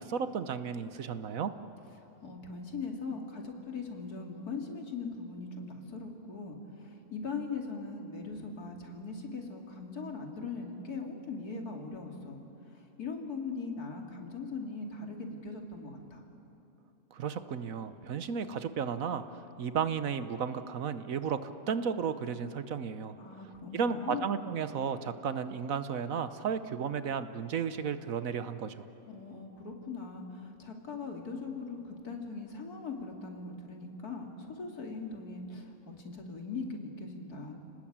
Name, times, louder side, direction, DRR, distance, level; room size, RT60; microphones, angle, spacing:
voice 1, 0.0-1.5 17.1-23.2 23.7-28.9, right 6 dB, 65° right, 11 dB, 1.3 m, -34 dB
voice 2, 2.2-12.4 12.7-16.2 23.2-24.3 29.1-37.6, left 4 dB, 80° left, 2 dB, 3.1 m, -40 dB
30.0 x 19.5 x 8.8 m, 3.0 s
omnidirectional pair, 1.6 m